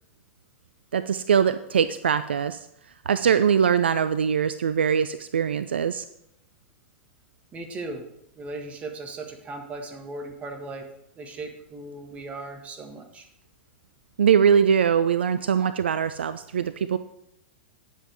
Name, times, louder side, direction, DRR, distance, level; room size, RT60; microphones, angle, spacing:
voice 1, 0.9-2.7 3.1-6.1 14.2-17.0, right 7 dB, 65° right, 13 dB, 0.4 m, -22 dB
voice 2, 7.5-8.0 8.3-10.9 11.2-13.3, right 2 dB, 20° right, 4 dB, 1.6 m, -37 dB
9.9 x 7.4 x 4.7 m, 0.80 s
figure-of-eight pair, 100°, 6 cm